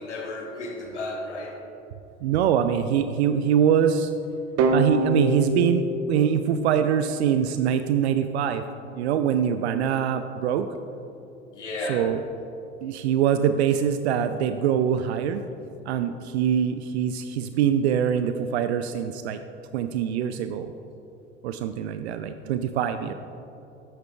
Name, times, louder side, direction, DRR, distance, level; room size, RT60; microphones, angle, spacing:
voice 1, 0.0-1.6 11.5-12.1, left 1 dB, 85° left, 0 dB, 1.4 m, -33 dB
voice 2, 2.2-4.1 4.7-8.6 8.9-10.7 11.9-12.2 12.8-15.4 15.9-19.4 19.7-20.7 21.4-23.1, right 8 dB, 70° right, 9 dB, 0.5 m, -23 dB
sound 1, 4.6-7.4, right 1 dB, 45° right, 0.9 m, -26 dB
10.5 x 8.7 x 2.3 m, 2.9 s
figure-of-eight pair, 75°, 35 cm